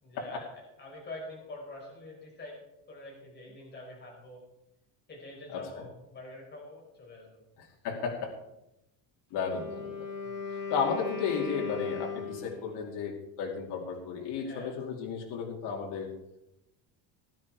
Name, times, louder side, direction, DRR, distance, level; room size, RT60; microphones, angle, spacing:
voice 1, 0.0-2.6 2.9-4.4 5.1-7.4 10.2-10.5 14.4-14.7, left 2 dB, 20° left, -2 dB, 5.1 m, -46 dB
voice 2, 7.8-8.3 9.3-10.0 10.7-16.1, left 6 dB, 55° left, 0 dB, 2.7 m, -33 dB
Wind instrument woodwind instrument, 9.3-12.8, left 5 dB, 75° left, 6.2 m, -38 dB
19.0 x 10.5 x 4.8 m, 0.89 s
cardioid pair, 165°, 48 cm